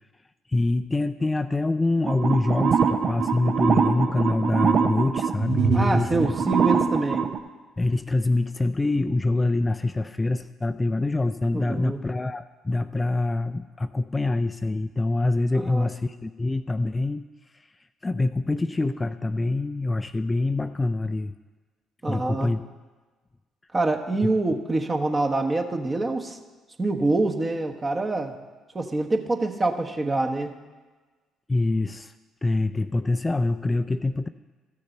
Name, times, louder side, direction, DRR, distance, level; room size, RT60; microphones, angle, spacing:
voice 1, 0.5-6.3 7.8-17.2 18.0-21.3 22.1-22.6 31.5-32.1 32.4-34.3, left 2 dB, 20° left, 10 dB, 0.4 m, -25 dB
sound 1, 2.1-7.4, right 6 dB, 55° right, 0.7 m, -23 dB
voice 2, 5.7-7.3 11.5-12.0 15.7-15.9 22.0-22.5 23.7-26.4 26.8-28.3 28.7-30.5, right 2 dB, 30° right, 3 dB, 1.2 m, -25 dB
13.5 x 6.5 x 4.4 m, 1.3 s
hypercardioid pair, 50°, 0 cm